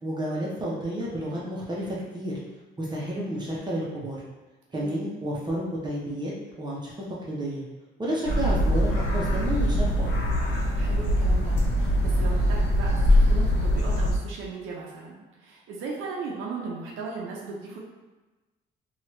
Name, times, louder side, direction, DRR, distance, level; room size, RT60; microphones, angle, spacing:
voice 1, 0.0-2.3 2.8-4.2 4.7-6.3 6.6-6.9 7.2-7.6 8.0-10.1, equal, 20° right, -6 dB, 0.7 m, -31 dB
voice 2, 4.7-5.0 10.8-17.8, right 4 dB, 90° right, -3 dB, 0.5 m, -37 dB
sound 1, 8.3-14.1, equal, 60° left, 0.8 m, -22 dB
2.8 x 2.3 x 3.1 m, 1.2 s
cardioid pair, 90°, 20 cm